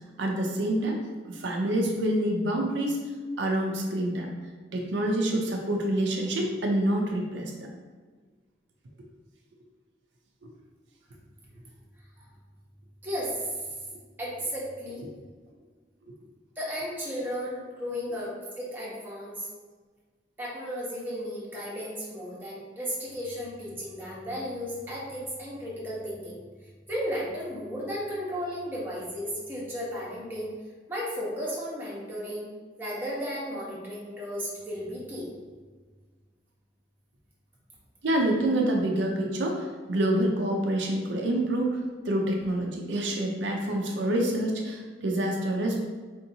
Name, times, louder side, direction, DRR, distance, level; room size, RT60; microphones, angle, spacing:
voice 1, 0.2-1.0 1.3-3.0 3.4-4.3 4.7-7.5 38.0-41.8 42.0-45.8, right 1 dB, 85° right, 1 dB, 0.5 m, -27 dB
voice 2, 13.0-13.3 14.2-15.0 16.6-19.5 20.4-26.4 26.9-30.5 30.9-32.5 32.8-35.3, equal, 10° right, -7 dB, 1.0 m, -34 dB
4.4 x 2.8 x 2.7 m, 1.4 s
head